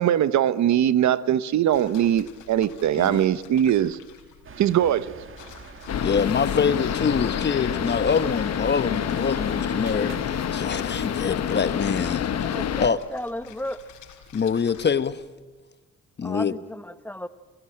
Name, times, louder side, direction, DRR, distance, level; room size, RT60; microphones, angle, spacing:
voice 1, 0.0-4.0 4.6-5.1, right 10 dB, 65° right, 0.9 m, -21 dB
sound 1, 1.7-15.3, left 8 dB, 90° left, 4.5 m, -50 dB
sound 2, 4.4-11.1, right 6 dB, 45° right, 1.6 m, -44 dB
sound 3, 5.9-12.9, left 9 dB, 60° left, 1.2 m, -27 dB
voice 2, 6.0-13.0 14.3-15.2 16.2-16.5, left 6 dB, 35° left, 1.1 m, -25 dB
voice 3, 12.4-13.8 16.2-17.3, left 1 dB, 5° left, 1.1 m, -34 dB
29.0 x 17.5 x 8.9 m
cardioid pair, 90°, 30 cm